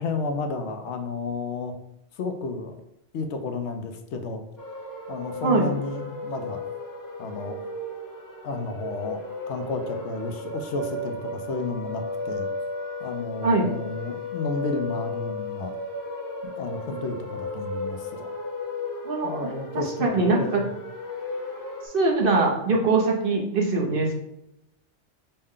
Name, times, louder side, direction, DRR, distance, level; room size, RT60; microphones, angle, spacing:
voice 1, 0.0-1.7 2.1-2.8 3.1-4.4 5.1-6.6 7.2-7.6 8.4-9.2 9.5-12.5 13.0-15.7 16.4-18.3 19.2-20.7 22.7-22.8, left 3 dB, 75° left, 6 dB, 0.9 m, -32 dB
sound 1, 4.6-21.9, left 2 dB, 20° left, 0.8 m, -35 dB
voice 2, 19.0-20.6 21.8-24.1, right 3 dB, 55° right, 0 dB, 0.9 m, -23 dB
5.4 x 2.1 x 3.6 m, 0.80 s
omnidirectional pair, 1.2 m